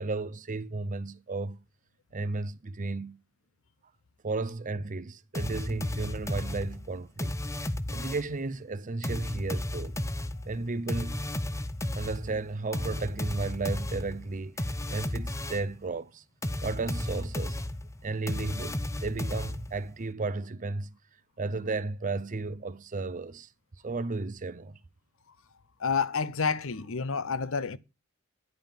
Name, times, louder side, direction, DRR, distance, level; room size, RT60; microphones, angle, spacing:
voice 1, 0.0-1.6 2.1-3.2 4.2-10.0 10.4-11.2 11.9-16.2 16.6-17.6 18.0-20.9 21.4-23.5 23.8-24.8, right 3 dB, 40° right, 0.6 m, -34 dB
sound 1, 5.3-8.4 9.0-15.8 16.4-19.9, left 1 dB, 15° left, 0.8 m, -34 dB
voice 2, 25.8-27.8, left 5 dB, 65° left, 0.7 m, -29 dB
10.5 x 5.4 x 7.4 m
head